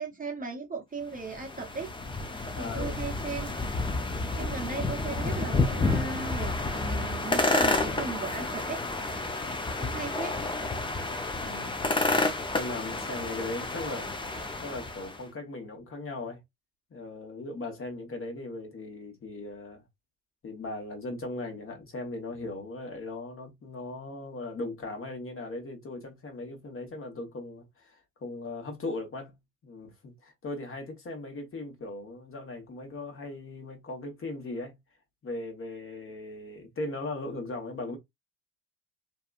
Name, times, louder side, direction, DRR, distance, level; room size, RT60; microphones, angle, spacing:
voice 1, 0.0-1.9 2.5-3.5 4.4-8.8 9.8-10.4, right 4 dB, 20° right, 0.8 m, -37 dB
sound 1, 1.2-15.2, left 2 dB, 15° left, 0.6 m, -30 dB
voice 2, 2.5-3.0 11.4-11.8 12.5-14.1 14.6-16.4 16.9-19.8 20.4-29.4 29.6-34.7 35.2-38.0, left 2 dB, 35° left, 1.2 m, -38 dB
2.7 x 2.2 x 2.4 m
hypercardioid pair, 60°, 37 cm